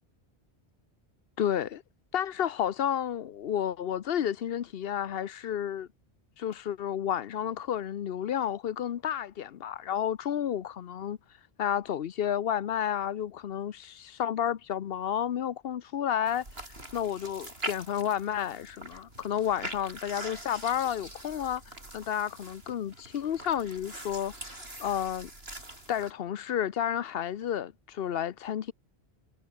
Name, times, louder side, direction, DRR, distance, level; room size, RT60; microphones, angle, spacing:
voice 1, 1.4-1.8 2.1-5.9 6.4-11.2 11.6-16.4 16.9-25.3 25.9-28.7, left 9 dB, 65° left, 0.9 m, -31 dB
sound 1, 16.3-26.1, right 1 dB, 65° right, 7.4 m, -43 dB
omnidirectional pair, 1.1 m